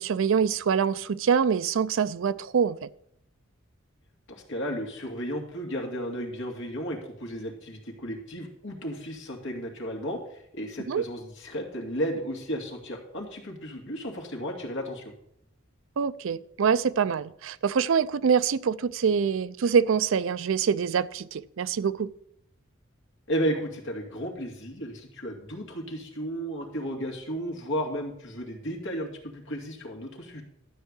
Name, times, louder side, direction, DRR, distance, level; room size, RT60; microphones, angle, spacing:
voice 1, 0.0-2.9 10.9-11.0 16.0-22.1, right 6 dB, 70° right, 0.4 m, -25 dB
voice 2, 4.3-15.1 23.3-30.4, equal, 65° left, 2.4 m, -34 dB
12.5 x 4.6 x 8.1 m
head